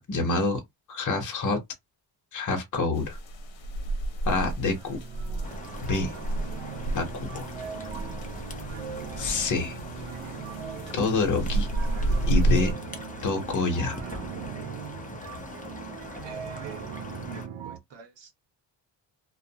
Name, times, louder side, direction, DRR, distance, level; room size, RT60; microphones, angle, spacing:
voice 1, 0.1-0.6 0.9-1.6 2.3-3.2 4.2-5.0 5.9-6.1 6.9-7.5 9.2-9.7 10.9-11.7 12.3-12.7 13.2-13.9, left 3 dB, 40° left, 1.0 m, -26 dB
sound 1, 2.9-12.7, right 2 dB, 80° left, 0.8 m, -31 dB
sound 2, 3.6-4.1 4.3-17.8, right 8 dB, 90° right, 0.7 m, -40 dB
sound 3, 5.4-17.5, left 2 dB, 20° left, 0.7 m, -41 dB
voice 2, 16.2-18.3, right 7 dB, 70° right, 1.0 m, -47 dB
2.4 x 2.2 x 2.8 m
cardioid pair, 120°, 45 cm